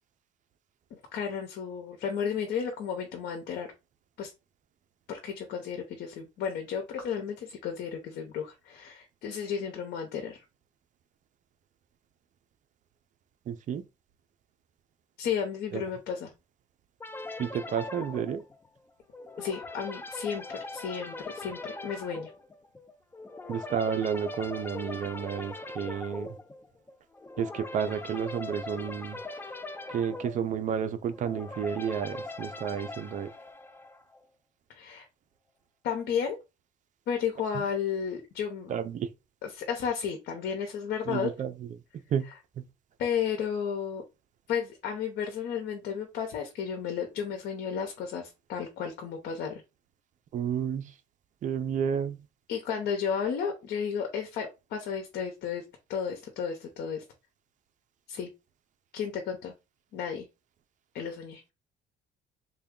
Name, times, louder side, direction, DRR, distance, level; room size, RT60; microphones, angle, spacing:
voice 1, 0.9-3.7 4.2-4.3 5.1-10.4 15.2-16.3 19.4-22.3 34.7-35.1 35.8-36.4 37.1-38.7 39.4-41.3 42.3-42.4 43.0-44.0 44.5-49.6 52.5-55.6 55.9-57.0 58.1-58.3 58.9-59.5 59.9-60.2 60.9-61.4, left 7 dB, 75° left, 0.8 m, -33 dB
voice 2, 13.5-13.8 15.7-15.8 17.4-18.4 23.5-26.3 27.4-29.2 29.9-33.3 38.7-39.1 41.1-41.5 41.9-42.2 42.6-42.7 50.3-50.9 51.4-52.2, right 8 dB, 45° right, 0.5 m, -31 dB
sound 1, 17.0-34.2, left 2 dB, 15° left, 0.4 m, -41 dB
3.4 x 2.2 x 3.7 m
cardioid pair, 110°, 17 cm